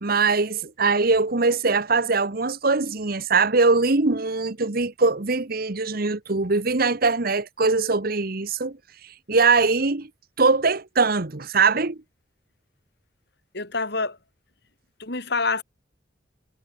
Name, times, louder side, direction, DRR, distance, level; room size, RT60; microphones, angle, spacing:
voice 1, 0.0-8.8 9.3-10.1 10.4-12.0, right 4 dB, 50° right, 1.2 m, -22 dB
voice 2, 13.5-14.2 15.0-15.6, left 3 dB, 60° left, 5.8 m, -26 dB
head